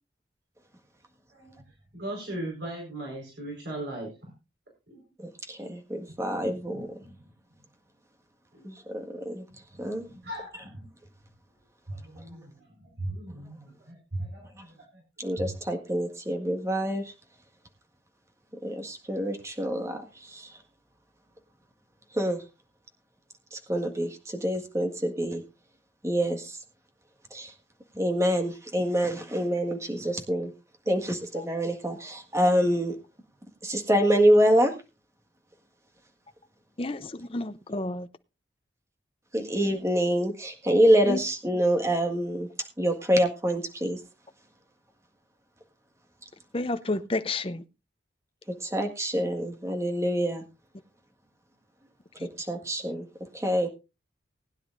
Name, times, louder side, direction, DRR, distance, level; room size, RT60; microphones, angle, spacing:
voice 1, 1.3-1.6 1.9-4.1 4.9-5.0 6.4-7.3 8.5-8.7 9.7-10.9 11.9-15.0 15.4-15.5, right 1 dB, 65° right, 4.7 m, -39 dB
voice 2, 5.5-6.9 8.6-9.4 9.8-10.0 15.2-17.0 18.6-20.5 22.1-22.4 23.5-25.4 26.0-26.6 27.3-27.5 28.0-30.5 30.9-33.0 33.6-34.7 39.3-42.5 42.8-44.0 48.6-50.4 52.4-53.0 53.3-53.7, equal, 15° right, 1.7 m, -26 dB
voice 3, 36.8-38.1 41.0-41.2 46.5-47.6, left 2 dB, 30° left, 0.7 m, -30 dB
20.0 x 10.0 x 2.6 m
head